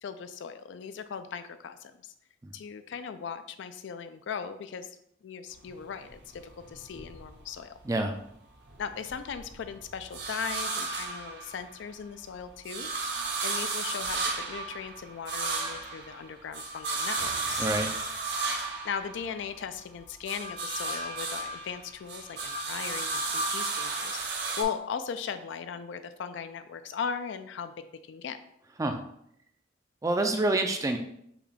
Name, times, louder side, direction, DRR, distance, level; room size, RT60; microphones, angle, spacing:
voice 1, 0.0-2.1 2.5-4.9 5.2-7.8 8.8-12.9 13.4-17.7 18.8-28.4, left 7 dB, 65° left, 11 dB, 0.3 m, -38 dB
sound 1, 5.5-7.9 8.3-11.9 12.3-19.8 20.1-24.6, right 3 dB, 60° right, 0.8 m, -34 dB
voice 2, 30.0-31.0, right 2 dB, 15° right, 5 dB, 0.4 m, -27 dB
5.7 x 2.3 x 4.1 m, 0.73 s
head